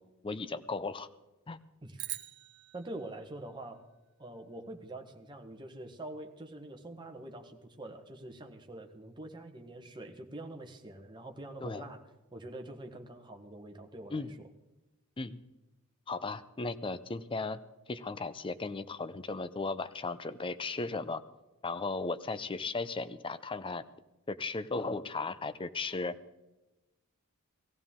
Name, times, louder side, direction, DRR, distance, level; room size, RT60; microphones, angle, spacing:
voice 1, 0.2-1.1 1.5-1.6 11.6-11.9 14.1-14.3 15.2-15.4 16.1-17.6 17.9-21.2 21.6-23.8 24.3-26.2, left 3 dB, 25° left, 13 dB, 0.5 m, -36 dB
sound 1, 2.0-4.4, right 15 dB, 50° right, 0.7 m, -45 dB
voice 2, 2.7-3.9 4.2-12.0 12.3-14.5, right 1 dB, 20° right, 3 dB, 1.2 m, -45 dB
18.0 x 15.0 x 3.7 m, 1.0 s
head